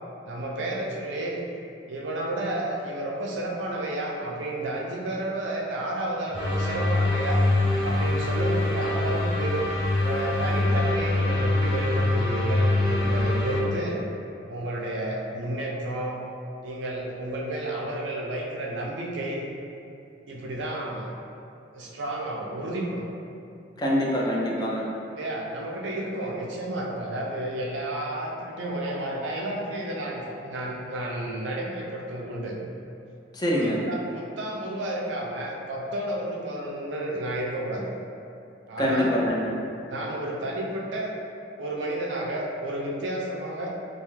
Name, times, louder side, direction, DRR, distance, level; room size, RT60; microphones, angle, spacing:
voice 1, 0.2-1.4 1.9-7.4 7.8-9.7 10.0-14.0 14.5-16.2 16.6-19.4 20.3-21.1 21.7-23.0 25.2-32.6 33.5-37.9 38.7-39.1 39.9-41.1 41.6-43.7, right 1 dB, 90° right, -2 dB, 0.4 m, -31 dB
sound 1, 6.3-13.6, left 2 dB, 75° left, 0.9 m, -24 dB
voice 2, 23.8-24.9 33.3-33.8 38.8-39.5, equal, 25° left, -4 dB, 0.4 m, -24 dB
2.5 x 2.3 x 3.0 m, 2.6 s
head